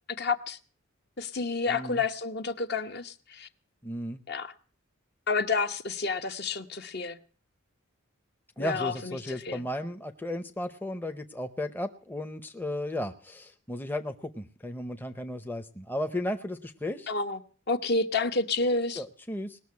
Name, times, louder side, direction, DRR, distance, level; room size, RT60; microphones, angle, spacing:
voice 1, 0.2-0.6 1.2-3.5 4.3-4.5 5.3-7.2 8.6-9.6 17.1-17.4 17.7-19.0, left 3 dB, 50° left, 0.9 m, -30 dB
voice 2, 1.7-2.0 3.8-4.2 8.6-17.1 19.0-19.6, left 1 dB, 10° left, 0.7 m, -35 dB
19.5 x 6.7 x 9.5 m
head